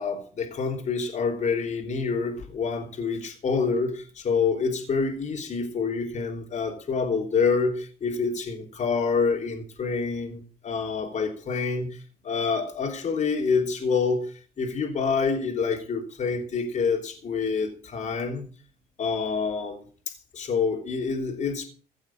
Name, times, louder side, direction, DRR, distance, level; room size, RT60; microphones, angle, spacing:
voice 1, 0.0-18.4 19.0-21.7, left 5 dB, 45° left, 3.3 m, -27 dB
16.0 x 7.2 x 7.6 m
cardioid pair, 110°, 17 cm